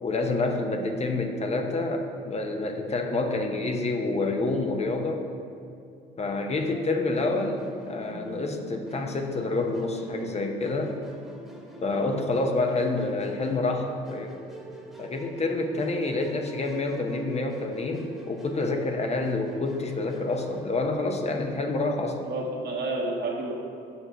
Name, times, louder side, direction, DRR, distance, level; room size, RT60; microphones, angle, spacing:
voice 1, 0.0-5.2 6.2-10.9 11.8-14.4 15.0-22.2, left 2 dB, 35° left, 4 dB, 0.9 m, -28 dB
Musical instrument, 7.1-20.9, equal, ahead, 1.5 m, -45 dB
voice 2, 22.2-23.5, right 2 dB, 55° right, -1 dB, 1.6 m, -30 dB
7.0 x 5.6 x 5.2 m, 2.5 s
supercardioid pair, 75°, 20 cm